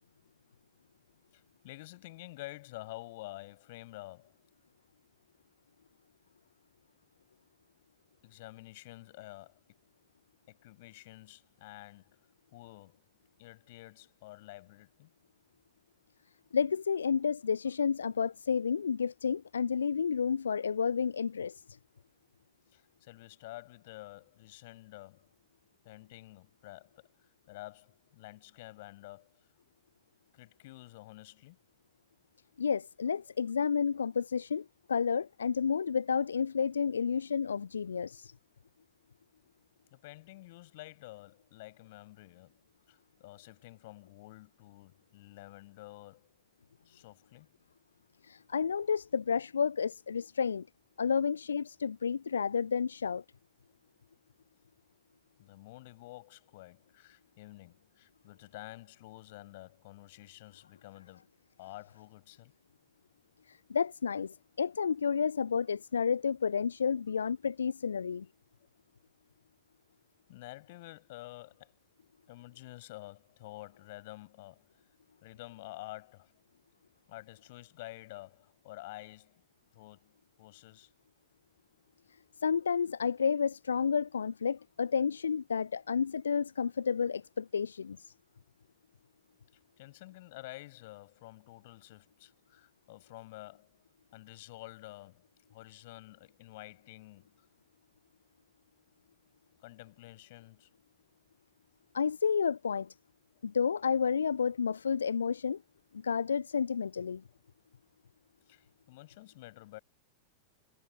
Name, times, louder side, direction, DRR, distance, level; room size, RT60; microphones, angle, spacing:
voice 1, 1.3-4.4 8.2-9.8 10.5-12.2 12.5-13.1 13.4-15.1 22.7-25.3 25.8-27.1 27.5-29.3 30.3-31.6 39.9-42.5 42.9-46.3 46.8-47.5 55.4-61.3 61.6-62.5 66.9-67.0 70.3-71.7 72.3-74.7 75.2-76.3 77.1-79.4 79.7-80.9 89.8-93.7 94.1-97.4 99.6-100.7 108.5-109.8, left 19 dB, 50° left, 5.1 m, -50 dB
voice 2, 16.5-21.6 32.6-38.3 48.2-50.7 51.0-53.2 63.5-68.3 82.4-88.0 101.9-102.9 103.4-105.6 105.9-107.2, left 6 dB, 70° left, 0.3 m, -31 dB
figure-of-eight pair, 90°, 0 cm